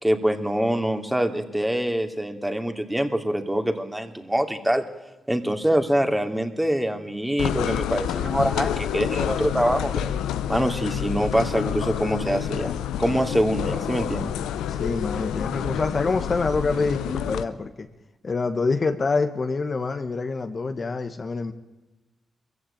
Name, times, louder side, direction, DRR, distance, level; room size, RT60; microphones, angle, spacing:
voice 1, 0.0-4.8 5.3-10.1 10.5-12.7 13.0-14.3, right 1 dB, 10° right, 5 dB, 2.7 m, -24 dB
sound 1, 7.4-17.4, left 10 dB, 90° left, 0.8 m, -28 dB
voice 2, 14.7-17.9 18.2-21.5, left 4 dB, 50° left, 7 dB, 1.6 m, -26 dB
22.0 x 15.5 x 9.0 m, 1.1 s
supercardioid pair, 45°, 0 cm